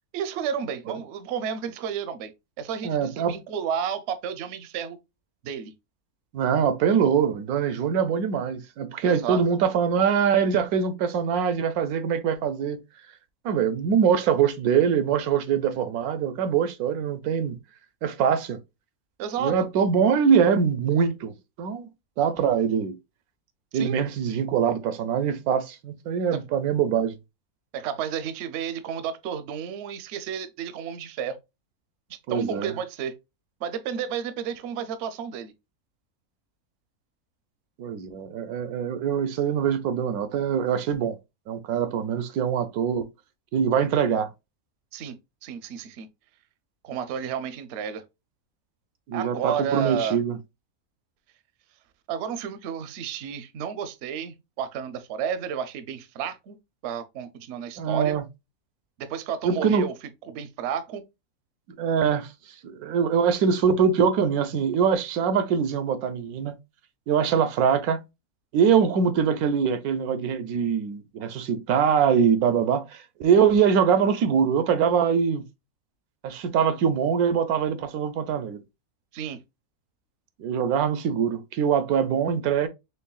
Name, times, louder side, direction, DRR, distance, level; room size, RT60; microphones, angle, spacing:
voice 1, 0.1-2.3 2.6-5.0 5.4-5.7 9.0-9.4 19.2-19.6 23.7-24.0 26.3-26.4 27.7-31.4 32.1-33.1 33.6-35.5 44.9-45.1 45.4-46.1 46.8-48.0 49.1-50.2 52.1-56.6 56.8-58.2 59.0-59.9 60.3-61.0 79.1-79.4, right 8 dB, 65° right, 0.7 m, -31 dB
voice 2, 2.8-3.4 6.3-12.8 13.4-17.6 18.0-18.6 19.4-21.9 22.2-23.0 23.7-27.1 32.3-32.7 37.8-41.2 41.5-43.1 43.5-44.3 49.1-50.4 57.8-58.2 59.4-59.8 61.8-62.3 62.6-66.5 67.1-68.0 68.5-75.4 76.2-78.6 80.4-82.7, right 7 dB, 85° right, 1.1 m, -23 dB
4.5 x 3.2 x 2.3 m
omnidirectional pair, 1.5 m